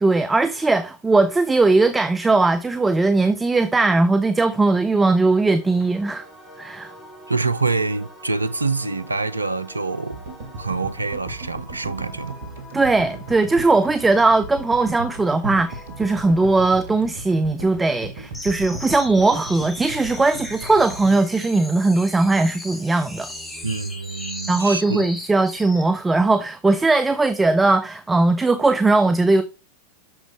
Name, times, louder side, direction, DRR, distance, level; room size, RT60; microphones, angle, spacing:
voice 1, 0.0-6.3 6.6-6.9 12.7-23.3 24.5-29.4, right 3 dB, 10° right, 0.5 m, -19 dB
sound 1, 5.5-16.9, left 1 dB, 25° left, 4.9 m, -45 dB
voice 2, 7.3-10.2 10.6-12.4 15.4-15.6 23.6-25.0, right 3 dB, 80° right, 0.4 m, -26 dB
sound 2, 10.1-22.4, right 2 dB, 65° right, 1.4 m, -37 dB
sound 3, 18.3-25.9, left 1 dB, 10° left, 1.9 m, -37 dB
7.8 x 6.4 x 3.0 m
figure-of-eight pair, 90°, 0 cm